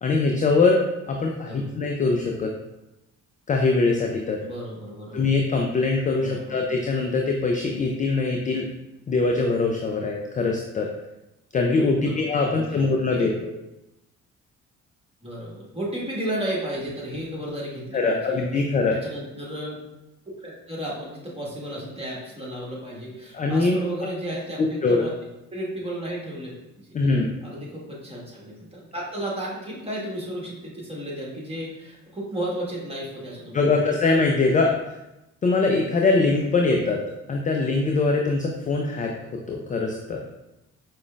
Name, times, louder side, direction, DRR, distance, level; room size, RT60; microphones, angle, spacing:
voice 1, 0.0-2.5 3.5-4.4 5.1-8.7 9.1-10.9 11.5-13.5 17.9-19.0 23.3-23.8 24.6-25.0 26.9-27.3 33.5-34.7 35.4-37.0 37.3-39.1 39.5-40.2, left 3 dB, 20° left, 1 dB, 0.4 m, -22 dB
voice 2, 4.4-5.3 6.2-6.6 12.0-13.3 15.2-18.6 18.9-19.8 20.4-25.1 25.5-33.8, right 1 dB, 15° right, -4 dB, 1.4 m, -34 dB
4.8 x 2.2 x 2.4 m, 0.93 s
hypercardioid pair, 45°, 39 cm